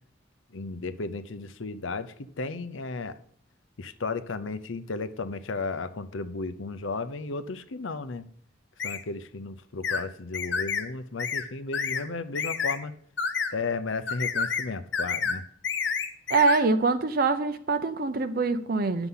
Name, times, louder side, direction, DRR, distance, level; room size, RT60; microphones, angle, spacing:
voice 1, 0.5-3.2 3.8-8.3 8.8-12.9 13.5-15.4, left 3 dB, 85° left, 13 dB, 0.7 m, -34 dB
sound 1, 8.8-9.0 9.8-10.0 10.3-10.8 11.2-11.4 11.7-12.0 12.3-12.8 13.2-13.5 14.1-14.7 14.9-15.4 15.6-16.6, left 5 dB, 65° left, 1.0 m, -29 dB
voice 2, 16.3-19.1, right 3 dB, 50° right, 9 dB, 0.6 m, -24 dB
9.9 x 7.1 x 5.6 m, 0.62 s
head